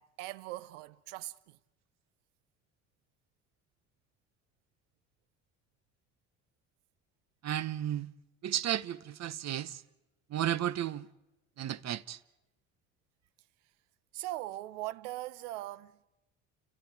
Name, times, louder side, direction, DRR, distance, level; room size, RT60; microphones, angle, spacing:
voice 1, 0.0-1.6 14.1-16.0, right 16 dB, 80° right, 0.9 m, -40 dB
voice 2, 7.4-8.1 8.4-9.8 10.3-11.1 11.6-12.2, right 11 dB, 45° right, 1.1 m, -33 dB
30.0 x 29.5 x 4.8 m
hypercardioid pair, 70°, 36 cm